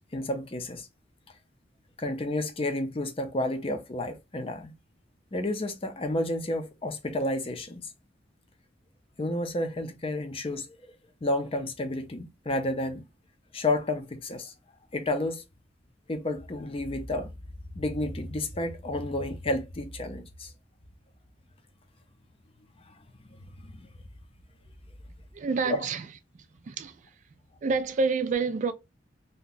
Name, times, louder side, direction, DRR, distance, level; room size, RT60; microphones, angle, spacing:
voice 1, 0.1-0.9 2.0-4.7 5.3-7.9 9.2-10.7 11.2-13.0 13.5-14.5 14.9-15.4 16.1-17.3 17.7-20.5 22.9-23.0 23.4-23.9 25.6-25.8, left 1 dB, 30° left, 0.5 m, -31 dB
voice 2, 25.3-26.1 26.6-27.1 27.6-28.7, right 4 dB, 40° right, 0.3 m, -28 dB
2.7 x 2.2 x 3.8 m
head